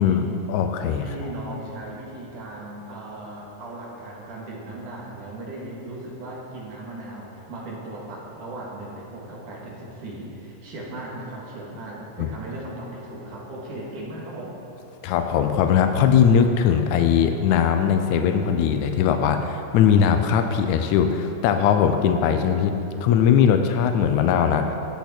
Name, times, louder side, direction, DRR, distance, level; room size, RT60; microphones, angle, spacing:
voice 1, 0.0-1.1 12.2-12.3 15.0-22.8 23.0-24.7, left 8 dB, 90° left, 6 dB, 1.6 m, -20 dB
voice 2, 1.0-14.6, right 1 dB, 65° right, -4 dB, 3.2 m, -37 dB
18.5 x 8.2 x 4.4 m, 2.9 s
omnidirectional pair, 4.1 m